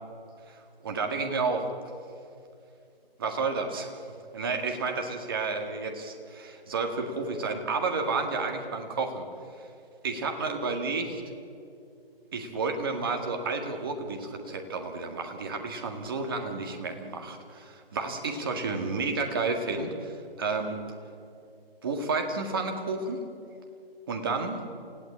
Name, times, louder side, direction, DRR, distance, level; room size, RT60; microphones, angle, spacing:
voice 1, 0.8-1.7 3.2-4.0 4.3-9.3 10.0-11.2 12.3-20.8 21.8-23.2 24.1-24.6, right 4 dB, 20° right, 4 dB, 1.9 m, -31 dB
28.5 x 17.0 x 8.6 m, 2.5 s
figure-of-eight pair, 160°, 30 cm